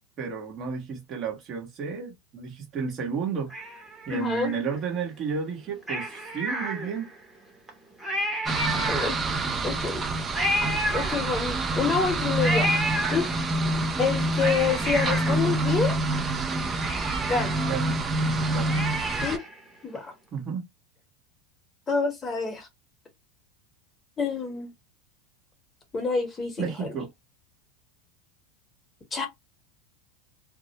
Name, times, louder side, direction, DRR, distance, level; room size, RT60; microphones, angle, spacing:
voice 1, 0.2-3.5 4.1-7.1 14.4-14.5 17.6-18.0 18.5-18.8 20.3-20.6 26.6-27.1, right 6 dB, 45° right, 1.0 m, -32 dB
Cat, 3.5-5.0 5.8-7.2 7.7-7.8 8.0-9.5 10.3-11.7 12.4-13.7 14.1-16.1 16.5-16.6 16.8-19.6 20.0-20.1, right 1 dB, 10° right, 0.9 m, -31 dB
voice 2, 4.1-4.5 8.7-9.2 9.6-10.0 10.9-12.8 13.1-13.3 14.0-16.0 17.3-17.7 19.2-19.4 19.8-20.1 21.9-22.7 24.2-24.7 25.9-26.9 29.1-29.3, left 5 dB, 20° left, 0.8 m, -27 dB
sound 1, 8.5-19.4, right 2 dB, 25° right, 0.4 m, -27 dB
2.2 x 2.0 x 2.8 m
hypercardioid pair, 100°, 0 cm